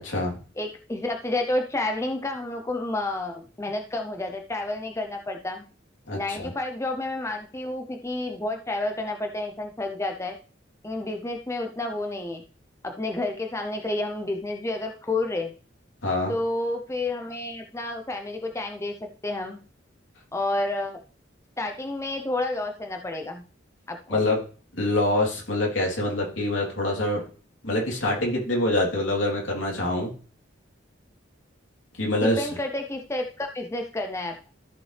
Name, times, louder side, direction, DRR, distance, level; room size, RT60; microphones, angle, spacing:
voice 1, 0.6-5.7 6.1-10.4 10.8-12.4 12.8-15.5 16.3-19.6 20.3-21.0 21.6-23.4 23.9-24.2 32.1-34.5, left 2 dB, 15° left, 4 dB, 0.6 m, -30 dB
voice 2, 6.1-6.5 16.0-16.3 24.1-24.4 24.7-27.2 27.6-30.1 32.0-32.5, left 1 dB, 80° left, -1 dB, 3.2 m, -25 dB
13.5 x 5.8 x 3.3 m, 0.40 s
head